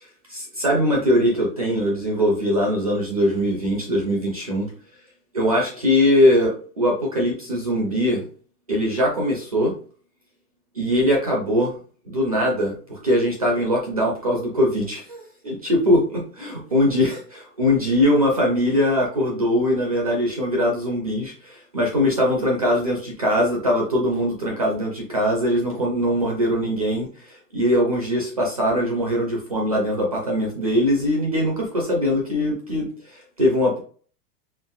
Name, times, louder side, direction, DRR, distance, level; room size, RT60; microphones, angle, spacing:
voice 1, 0.3-4.7 5.3-8.2 8.7-9.7 10.7-11.7 12.1-33.8, equal, 25° right, -1 dB, 0.3 m, -21 dB
4.5 x 3.4 x 2.3 m, 0.42 s
supercardioid pair, 170°, 48 cm